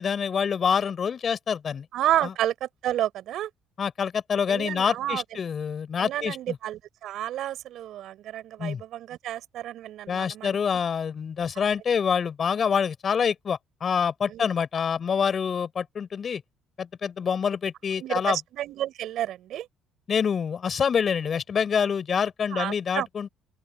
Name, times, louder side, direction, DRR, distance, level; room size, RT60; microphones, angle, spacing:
voice 1, 0.0-1.8 2.2-2.3 3.8-6.6 8.6-8.8 10.1-16.4 16.8-18.4 20.1-23.3, left 7 dB, 45° left, 4.9 m, -26 dB
voice 2, 1.9-3.5 4.5-5.4 6.0-10.6 14.3-14.5 18.0-19.7 22.5-23.1, right 12 dB, 65° right, 4.9 m, -30 dB
open air
hypercardioid pair, 60°, 0 cm